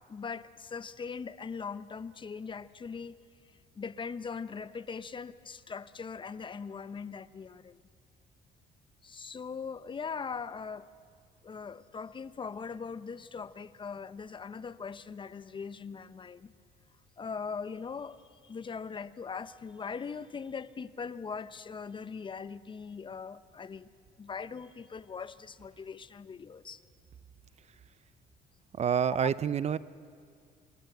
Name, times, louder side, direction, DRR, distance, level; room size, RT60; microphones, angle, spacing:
voice 1, 0.1-3.2 3.7-7.8 9.0-10.9 11.4-16.5 17.2-23.9 24.2-26.8 29.2-29.3, left 5 dB, 30° left, 0.9 m, -40 dB
voice 2, 28.8-29.8, right 8 dB, 40° right, 0.6 m, -27 dB
28.5 x 26.0 x 8.0 m
cardioid pair, 110°, 17 cm